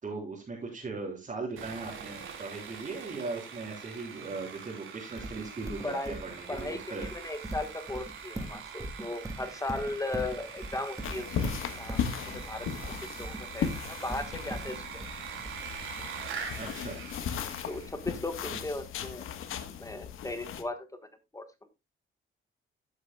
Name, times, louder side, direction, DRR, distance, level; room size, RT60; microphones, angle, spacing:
voice 1, 0.0-7.0 16.6-17.0 18.4-18.6, right 3 dB, 35° right, -4 dB, 3.6 m, -38 dB
Sawing, 1.6-18.0, right 6 dB, 75° right, 3.3 m, -43 dB
Livestock farm animals working animals, 5.2-16.0, right 1 dB, 15° right, 2.0 m, -40 dB
voice 2, 5.8-6.2 6.5-11.3 11.8-12.0 12.3-12.7 13.2-15.0 17.7-19.3 19.8-20.9 21.3-21.4, left 2 dB, 15° left, 9 dB, 1.3 m, -36 dB
sound 1, 11.0-20.6, left 8 dB, 80° left, 1.3 m, -37 dB
15.0 x 8.0 x 2.3 m, 0.23 s
cardioid pair, 100°, 21 cm